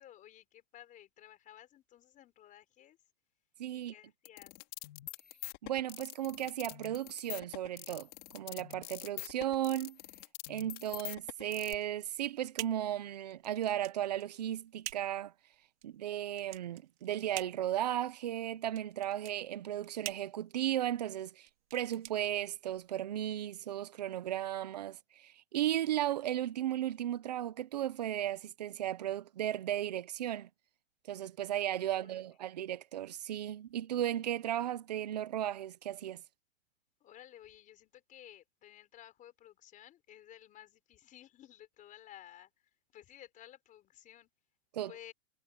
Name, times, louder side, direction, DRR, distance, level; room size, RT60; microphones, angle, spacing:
voice 1, 0.0-3.0 3.7-4.5 31.9-32.2 37.0-44.3 44.9-45.1, left 12 dB, 20° left, 5.4 m, -55 dB
voice 2, 3.6-3.9 5.6-10.0 10.5-15.3 15.8-30.5 31.1-36.2 44.7-45.1, right 12 dB, 35° right, 0.4 m, -35 dB
sound 1, 4.2-11.7, left 20 dB, 35° left, 3.0 m, -45 dB
sound 2, 11.7-23.0, right 15 dB, 55° right, 2.8 m, -48 dB
supercardioid pair, 170°, 40 cm